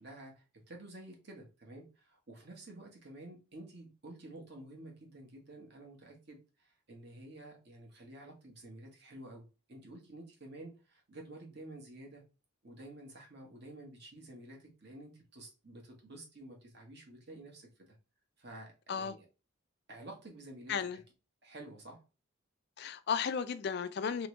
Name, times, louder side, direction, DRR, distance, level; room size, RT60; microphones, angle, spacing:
voice 1, 0.0-12.2 12.6-17.9 18.4-19.3 19.9-20.9 21.4-22.0, right 1 dB, 50° right, 1.1 m, -51 dB
voice 2, 20.7-21.0 22.8-24.3, left 6 dB, 50° left, 0.3 m, -34 dB
3.1 x 3.0 x 3.1 m
head